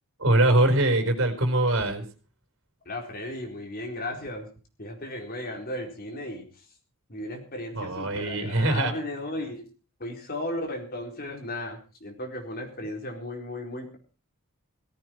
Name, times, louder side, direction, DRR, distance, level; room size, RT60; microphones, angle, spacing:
voice 1, 0.2-2.0 7.7-8.9, right 1 dB, 60° right, 7 dB, 4.5 m, -22 dB
voice 2, 2.9-4.5 4.8-6.5 7.1-9.6 10.0-14.0, left 1 dB, 45° left, 3 dB, 4.3 m, -35 dB
17.5 x 14.5 x 4.6 m, 0.35 s
head